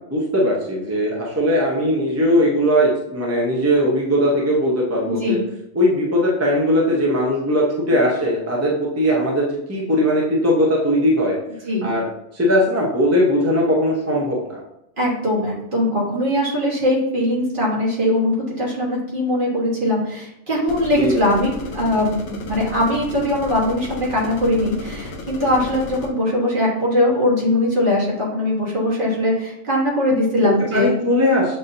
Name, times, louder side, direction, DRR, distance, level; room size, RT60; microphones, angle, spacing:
voice 1, 0.1-5.4 5.7-11.4 11.8-12.1 12.3-14.6 20.9-21.4 30.6-31.6, equal, 15° right, -3 dB, 0.6 m, -19 dB
voice 2, 5.1-5.4 7.9-8.0 11.6-11.9 15.0-30.9, left 1 dB, 45° right, -5 dB, 1.4 m, -21 dB
sound 1, 20.7-26.1, left 2 dB, 70° left, 1.0 m, -34 dB
7.5 x 2.7 x 2.6 m, 0.84 s
omnidirectional pair, 1.3 m